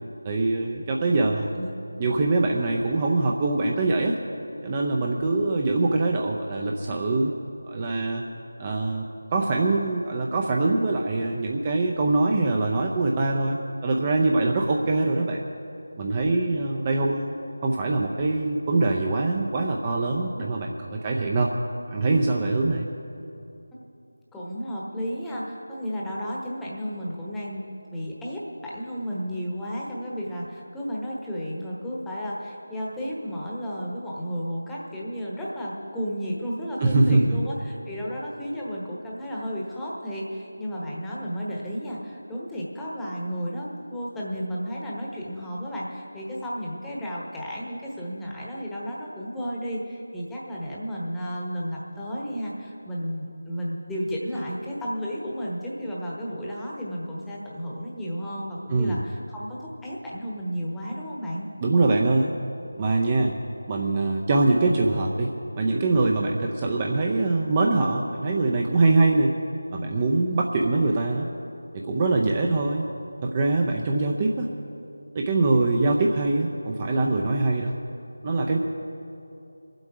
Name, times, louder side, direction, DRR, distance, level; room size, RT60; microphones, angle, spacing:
voice 1, 0.2-1.5 2.0-4.2 4.6-7.3 7.6-8.2 8.6-15.5 16.0-17.3 17.6-21.5 21.9-22.9 36.8-37.4 58.7-59.0 61.6-62.3 62.8-63.4 63.7-69.3 69.7-71.3 71.7-72.9 73.2-74.5 75.1-77.7 78.2-78.6, right 2 dB, 20° right, 0 dB, 0.6 m, -23 dB
voice 2, 1.1-1.7 24.3-61.5, equal, 5° left, -5 dB, 1.1 m, -33 dB
23.0 x 7.9 x 4.8 m, 2.8 s
figure-of-eight pair, 165°, 0 cm